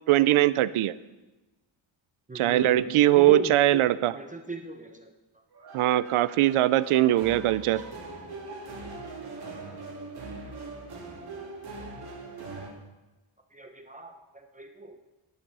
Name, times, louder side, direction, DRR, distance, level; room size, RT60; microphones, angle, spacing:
voice 1, 0.1-0.9 2.3-4.2 5.7-7.8, right 14 dB, 80° right, 17 dB, 0.6 m, -21 dB
voice 2, 2.3-3.8 4.1-5.1 7.1-7.2 13.5-14.1 14.6-15.0, right 1 dB, 15° right, 5 dB, 0.7 m, -37 dB
sound 1, 5.5-12.7, right 3 dB, 50° right, 2.7 m, -41 dB
11.0 x 10.5 x 5.4 m, 1.1 s
wide cardioid pair, 160°, 49 cm